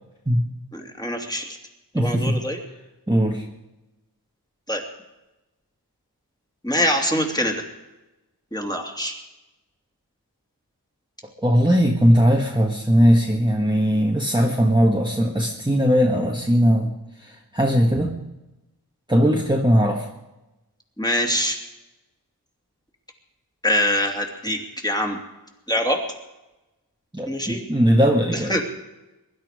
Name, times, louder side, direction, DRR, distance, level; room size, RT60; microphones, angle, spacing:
voice 1, 0.7-1.6 1.9-2.6 4.7-4.8 6.6-7.6 8.5-9.1 21.0-21.6 23.6-25.2 25.7-26.0 27.3-27.6 28.5-28.6, left 1 dB, 10° left, 1 dB, 2.8 m, -24 dB
voice 2, 1.9-2.4 3.1-3.5 11.4-18.2 19.1-20.1 27.1-28.6, equal, 10° right, -1 dB, 1.7 m, -19 dB
23.0 x 12.0 x 5.1 m, 1.0 s
wide cardioid pair, 85°, 40 cm